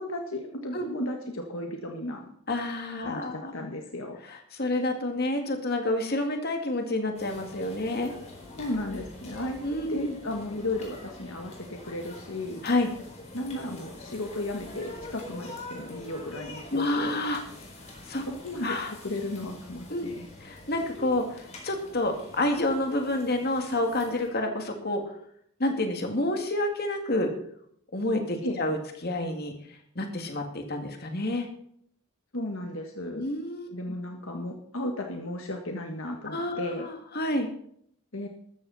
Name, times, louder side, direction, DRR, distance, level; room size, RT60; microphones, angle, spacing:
voice 1, 0.0-2.3 3.0-4.2 8.6-9.6 9.9-12.7 13.3-17.2 18.3-18.8 19.0-20.3 28.4-28.6 32.3-33.2 33.7-36.9 38.1-38.3, left 1 dB, 65° left, 3 dB, 1.6 m, -34 dB
voice 2, 2.5-3.5 4.2-8.1 9.6-10.2 12.6-12.9 16.7-17.4 18.1-18.2 18.6-18.9 19.9-20.1 20.4-25.0 25.6-27.3 27.9-29.5 30.0-31.5 33.2-33.7 36.2-37.5, left 1 dB, 45° left, 4 dB, 2.4 m, -29 dB
sound 1, 7.1-24.3, left 2 dB, 30° left, 4.3 m, -45 dB
14.0 x 13.5 x 4.2 m, 0.66 s
head